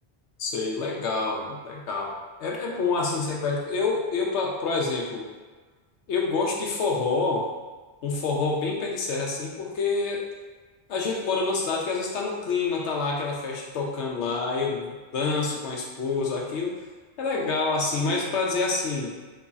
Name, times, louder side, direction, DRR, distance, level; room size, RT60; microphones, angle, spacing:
voice 1, 0.4-5.3 6.1-7.5 8.0-10.3 10.9-16.7 17.2-19.1, left 4 dB, 80° left, -1 dB, 0.9 m, -27 dB
3.1 x 2.3 x 3.9 m, 1.4 s
omnidirectional pair, 1.2 m